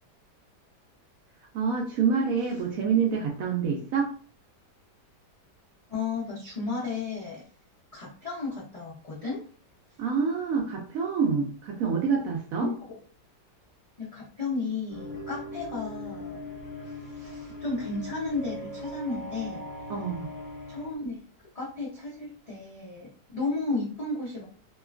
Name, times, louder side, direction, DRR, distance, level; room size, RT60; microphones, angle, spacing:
voice 1, 1.5-4.1 10.0-12.7 19.9-20.3, right 6 dB, 70° right, 0 dB, 0.8 m, -27 dB
voice 2, 5.9-7.4 7.9-9.4 12.6-13.0 14.0-16.4 16.8-19.6 20.7-21.2 21.5-24.4, left 3 dB, 70° left, -6 dB, 0.3 m, -33 dB
sound 1, 14.9-21.0, left 1 dB, 40° left, 1.1 m, -39 dB
2.9 x 2.2 x 2.3 m, 0.42 s
omnidirectional pair, 1.9 m